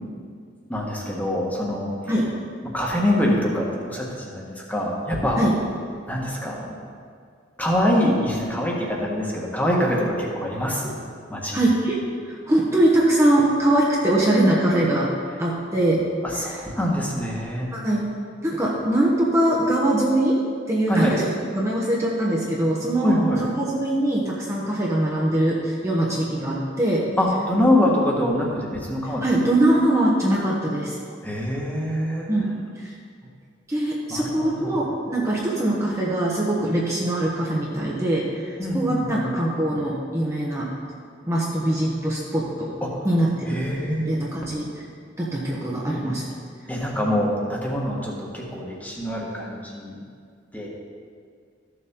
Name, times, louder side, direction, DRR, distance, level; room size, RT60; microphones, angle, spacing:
voice 1, 0.7-2.1 2.6-5.4 6.1-6.7 7.6-11.0 11.3-11.6 16.2-17.7 20.9-21.1 23.0-23.4 27.2-29.3 31.2-32.3 34.1-34.8 38.6-39.3 42.8-43.1 43.4-44.2 46.7-50.0 50.5-50.7, left 1 dB, 10° left, -3 dB, 1.5 m, -24 dB
voice 2, 11.5-15.1 15.4-16.1 17.7-18.1 18.4-20.4 20.7-21.3 21.5-23.1 23.4-27.1 29.2-31.0 32.3-32.9 33.7-40.7 41.2-42.7 43.0-43.6 44.0-44.7 45.2-46.3, right 1 dB, 15° right, -5 dB, 1.0 m, -22 dB
14.0 x 6.9 x 3.7 m, 2.1 s
head